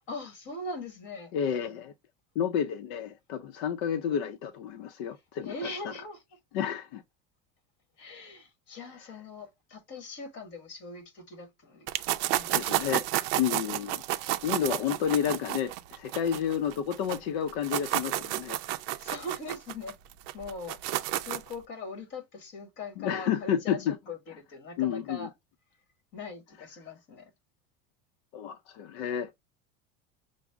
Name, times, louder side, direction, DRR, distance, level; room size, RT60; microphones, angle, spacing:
voice 1, 0.1-1.3 5.4-6.2 8.0-11.9 12.3-12.8 16.3-16.4 19.0-20.0 20.3-25.3 26.1-27.3, left 2 dB, 35° left, 1.4 m, -41 dB
voice 2, 1.3-1.9 2.4-5.9 6.5-7.0 12.5-13.1 13.4-14.0 14.4-18.7 23.0-24.0 24.8-25.3 28.3-29.3, left 8 dB, 70° left, 0.6 m, -30 dB
sound 1, 11.9-17.2 17.5-21.5, right 14 dB, 60° right, 0.5 m, -31 dB
6.0 x 2.0 x 3.4 m
cardioid pair, 180°, 33 cm